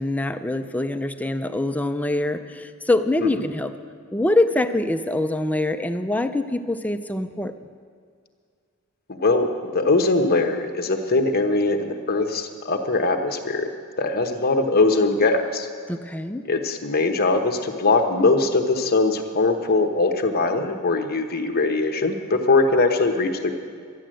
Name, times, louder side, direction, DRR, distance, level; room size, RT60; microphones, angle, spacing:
voice 1, 0.0-3.7 4.1-7.5 15.9-16.4, left 2 dB, 5° left, 8 dB, 0.4 m, -24 dB
voice 2, 9.1-13.7 14.0-15.7 16.4-23.5, left 3 dB, 45° left, 4 dB, 1.1 m, -21 dB
13.0 x 10.0 x 7.6 m, 2.2 s
head